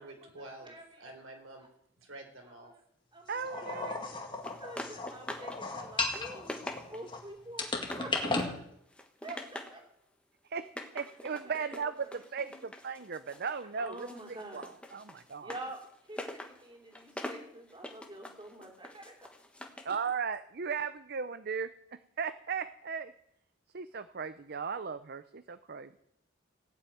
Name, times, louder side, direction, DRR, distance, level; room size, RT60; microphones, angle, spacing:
voice 1, 0.0-0.7 1.0-1.6 2.0-2.7, right 2 dB, 85° right, 4 dB, 3.8 m, -48 dB
voice 2, 0.6-1.1 1.6-1.7 2.4-2.8 3.1-4.2 4.5-8.5 9.2-9.8 10.9-11.0 11.3-12.1 12.4-12.6 13.8-14.7 15.4-15.8 16.1-19.1, right 1 dB, 25° right, 2 dB, 3.0 m, -47 dB
voice 3, 3.3-4.0 10.4-10.6 10.9-15.5 19.8-21.7 22.2-23.1 23.7-26.0, right 6 dB, 50° right, 13 dB, 0.6 m, -37 dB
sound 1, 3.4-7.2 7.6-8.5, left 3 dB, 25° left, 2.0 m, -35 dB
sound 2, 4.4-5.6 5.9-7.2 7.6-8.5 8.9-9.8 10.6-13.6 13.9-20.0, left 1 dB, 5° left, 1.4 m, -44 dB
17.0 x 7.3 x 9.2 m, 0.73 s
head